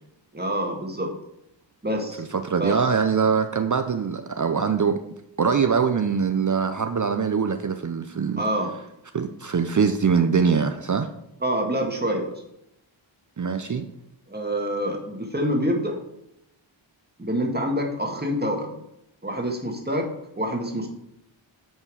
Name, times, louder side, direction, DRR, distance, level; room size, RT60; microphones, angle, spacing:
voice 1, 0.3-1.1 1.8-2.2 2.6-2.8 8.4-8.7 11.4-12.3 14.3-16.0 17.2-18.7 19.2-20.1 20.4-20.9, equal, 20° right, 1 dB, 1.8 m, -26 dB
voice 2, 2.2-5.0 5.4-8.4 9.1-11.1 13.4-13.9, right 6 dB, 40° right, 8 dB, 0.6 m, -23 dB
8.9 x 4.5 x 4.8 m, 0.81 s
cardioid pair, 60°, 48 cm